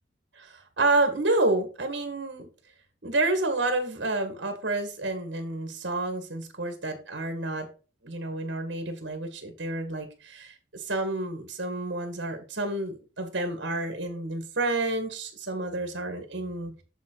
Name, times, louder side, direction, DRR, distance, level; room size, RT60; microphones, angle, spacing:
voice 1, 0.3-2.5 3.0-7.7 8.0-16.7, right 2 dB, 70° right, 6 dB, 1.9 m, -29 dB
7.4 x 7.4 x 3.9 m, 0.35 s
head